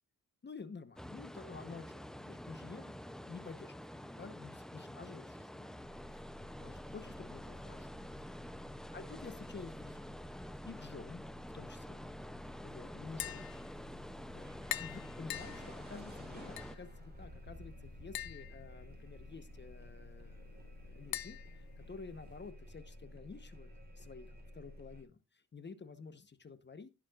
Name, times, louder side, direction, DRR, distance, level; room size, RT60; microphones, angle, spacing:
voice 1, 0.4-5.7 6.1-7.9 8.2-8.3 8.9-10.2 10.6-11.2 11.5-12.1 12.6-13.5 14.3-14.5 14.8-23.7 24.0-26.9, left 4 dB, 30° left, 10 dB, 1.0 m, -51 dB
sound 1, 1.0-16.8, equal, ahead, 0.5 m, -48 dB
sound 2, 5.8-25.0, left 1 dB, 30° right, 3.6 m, -53 dB
Tap, 13.0-22.5, left 13 dB, 85° left, 0.7 m, -47 dB
17.5 x 7.3 x 2.4 m, 0.25 s
wide cardioid pair, 165°, 34 cm